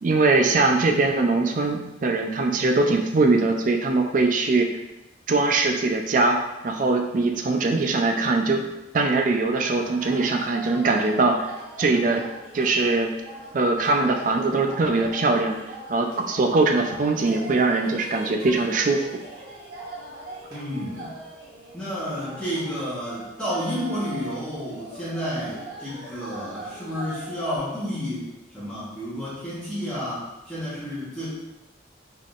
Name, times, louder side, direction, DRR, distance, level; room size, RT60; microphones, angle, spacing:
voice 1, 0.0-4.7 5.3-11.5 11.8-12.3 12.5-13.1 13.5-15.6 15.9-19.2, right 3 dB, 45° right, 4 dB, 0.4 m, -22 dB
sound 1, 9.6-27.6, right 2 dB, 60° right, 1.3 m, -40 dB
voice 2, 20.5-21.2 21.7-31.3, equal, 5° left, -12 dB, 1.1 m, -31 dB
3.7 x 3.7 x 2.4 m, 0.96 s
head